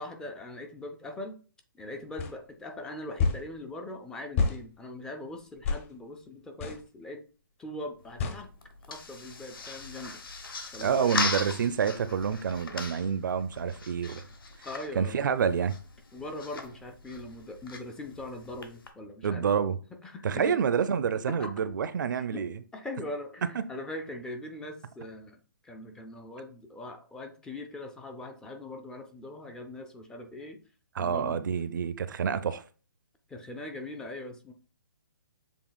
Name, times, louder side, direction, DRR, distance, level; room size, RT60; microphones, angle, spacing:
voice 1, 0.0-1.4 1.8-7.2 7.6-8.5 8.9-10.2 10.7-11.2 14.2-14.3 14.6-15.3 16.1-19.5 20.0-20.6 21.3-21.5 22.3-22.4 22.7-30.6 31.0-31.4 33.3-34.5, left 1 dB, 5° left, 0.3 m, -41 dB
sound 1, 2.2-2.3 3.2-3.5 4.4-4.6 5.6-5.9 6.6-6.8 8.2-8.4, left 4 dB, 40° left, 0.7 m, -27 dB
sound 2, 8.0-18.9, left 4 dB, 80° left, 1.0 m, -39 dB
voice 2, 10.8-14.2 15.0-15.8 19.2-19.8 20.2-22.6 31.0-32.6, right 7 dB, 60° right, 0.4 m, -28 dB
7.1 x 2.8 x 2.3 m
hypercardioid pair, 145°, 12 cm